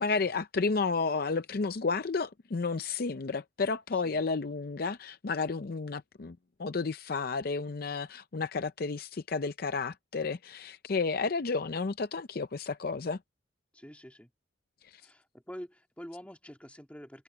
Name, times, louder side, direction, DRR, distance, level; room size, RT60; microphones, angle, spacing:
voice 1, 0.0-13.2 14.8-15.0, left 4 dB, 50° left, 0.5 m, -32 dB
voice 2, 3.9-4.2 13.7-14.3 15.0-17.2, equal, 5° left, 2.4 m, -47 dB
open air
head